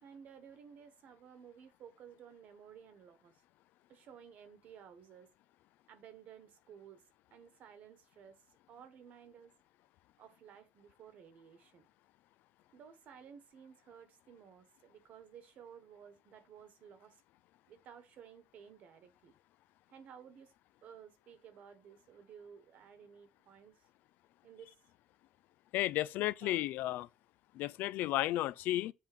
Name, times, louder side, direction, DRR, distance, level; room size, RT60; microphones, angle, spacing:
voice 1, 0.0-3.4 3.9-5.3 5.9-7.0 7.3-8.4 8.7-9.5 10.2-11.9 12.7-17.2 17.7-19.3 19.9-20.5 20.8-23.8 24.4-24.7 26.2-26.7, right 7 dB, 55° right, 1.2 m, -55 dB
voice 2, 25.7-27.1 27.5-28.9, left 15 dB, 85° left, 0.4 m, -33 dB
7.5 x 3.6 x 6.1 m
cardioid pair, 165°, 3 cm